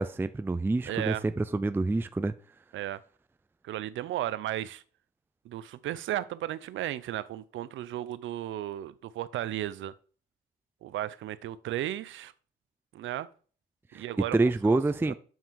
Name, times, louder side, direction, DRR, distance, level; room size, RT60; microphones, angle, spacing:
voice 1, 0.0-2.3 13.9-14.0 14.3-15.1, right 2 dB, 10° right, 0.4 m, -27 dB
voice 2, 0.9-1.2 2.7-3.0 3.6-4.8 5.4-9.9 10.8-12.3 12.9-13.3 13.9-14.4 14.6-14.8 15.1-15.2, right 13 dB, 75° right, 0.6 m, -34 dB
7.3 x 5.7 x 4.7 m
cardioid pair, 90°, 20 cm